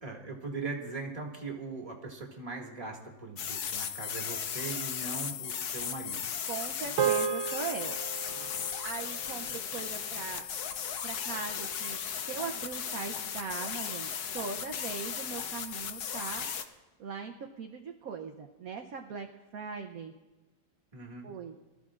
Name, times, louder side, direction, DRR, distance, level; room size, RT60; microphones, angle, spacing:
voice 1, 0.0-6.2 20.9-21.3, right 3 dB, 20° right, -1 dB, 2.0 m, -40 dB
sound 1, 3.4-16.6, left 8 dB, 60° left, 1.2 m, -36 dB
voice 2, 6.5-7.9 8.8-10.4 11.0-16.5 17.0-19.3 19.5-20.1 21.2-21.5, right 6 dB, 60° right, 4 dB, 1.0 m, -40 dB
sound 2, 7.0-11.5, right 8 dB, 80° right, 1.4 m, -35 dB
24.5 x 14.0 x 2.5 m, 1.2 s
omnidirectional pair, 2.1 m